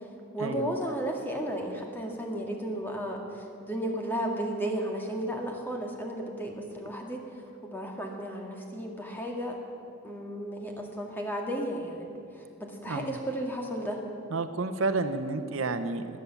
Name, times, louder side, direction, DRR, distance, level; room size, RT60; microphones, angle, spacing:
voice 1, 0.3-7.2 7.6-9.6 10.0-12.0 12.3-14.0, right 1 dB, 10° left, 1 dB, 1.8 m, -34 dB
voice 2, 14.3-16.2, right 3 dB, 70° right, 9 dB, 0.7 m, -30 dB
21.0 x 8.4 x 7.1 m, 2.5 s
head